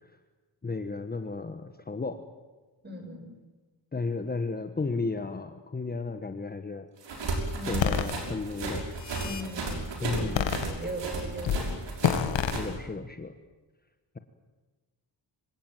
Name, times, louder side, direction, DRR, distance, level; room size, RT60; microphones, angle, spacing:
voice 1, 0.6-2.2 3.9-6.8 7.6-8.9 10.0-10.6 12.5-13.3, left 3 dB, 20° left, 8 dB, 1.3 m, -33 dB
voice 2, 2.8-3.3 7.6-8.1 9.2-11.7, right 1 dB, 20° right, 4 dB, 6.7 m, -39 dB
sound 1, 7.0-12.7, right 3 dB, 70° right, 6.0 m, -34 dB
sound 2, 7.8-8.1 8.8-9.5 10.4-11.1 11.4-11.7 12.0-12.6, left 8 dB, 85° left, 2.0 m, -27 dB
26.0 x 17.0 x 9.1 m, 1.3 s
cardioid pair, 110°, 44 cm